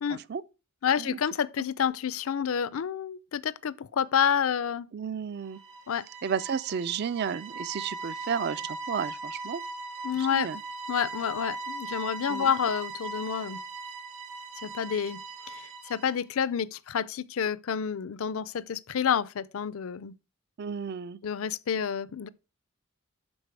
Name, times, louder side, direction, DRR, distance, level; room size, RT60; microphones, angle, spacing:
voice 1, 0.8-4.9 5.9-6.1 10.0-10.5 10.9-13.6 14.6-15.2 15.5-20.1 21.2-22.3, left 7 dB, 70° left, 0.4 m, -29 dB
voice 2, 4.9-5.6 6.2-9.6 10.2-10.6 12.3-12.5 20.6-21.2, right 7 dB, 50° right, 0.4 m, -32 dB
sound 1, 5.5-16.2, right 3 dB, 65° right, 2.0 m, -39 dB
11.5 x 4.1 x 4.6 m
head